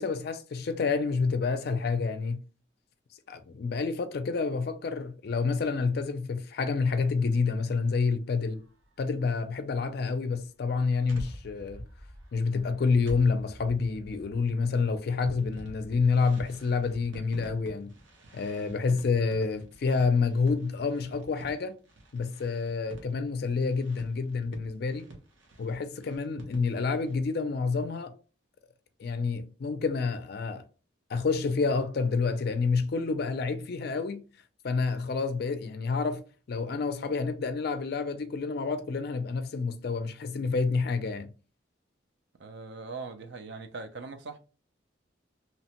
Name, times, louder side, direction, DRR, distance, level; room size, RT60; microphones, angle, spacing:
voice 1, 0.0-2.4 3.3-8.6 9.0-11.8 12.3-17.9 18.3-21.7 22.1-25.1 25.6-28.1 29.0-30.7 31.1-34.2 34.6-41.3, left 4 dB, 55° left, 0.4 m, -28 dB
sound 1, 8.4-9.0 10.3-27.2, right 1 dB, 85° right, 0.8 m, -48 dB
voice 2, 42.4-44.4, right 4 dB, 60° right, 0.4 m, -40 dB
2.8 x 2.1 x 2.8 m
head